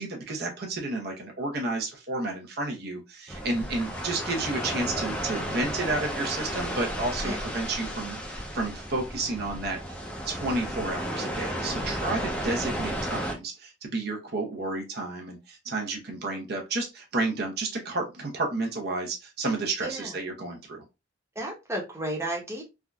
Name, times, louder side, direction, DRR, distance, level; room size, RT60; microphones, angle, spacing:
voice 1, 0.0-10.0 10.3-20.8, right 2 dB, 55° right, 0.7 m, -31 dB
sound 1, 3.3-13.3, equal, 5° left, 0.5 m, -33 dB
voice 2, 19.8-20.2 21.4-22.6, right 1 dB, 15° right, 0.8 m, -33 dB
3.5 x 2.5 x 2.2 m
head